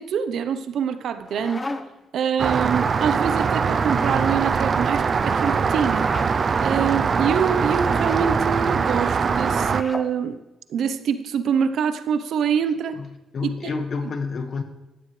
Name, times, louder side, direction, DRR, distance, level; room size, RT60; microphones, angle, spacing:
voice 1, 0.0-1.7 2.1-6.1 6.6-10.4 10.7-13.0 13.4-13.5, right 7 dB, 70° right, 0.8 m, -25 dB
sound 1, 1.0-2.1 3.7-4.3 5.8-6.3 7.8-8.3 9.5-10.1, left 2 dB, 20° left, 1.0 m, -36 dB
Rain, 2.4-9.8, right 5 dB, 45° right, 0.6 m, -22 dB
voice 2, 12.9-14.6, left 4 dB, 50° left, 1.7 m, -29 dB
17.5 x 13.0 x 3.3 m
cardioid pair, 90°, 0 cm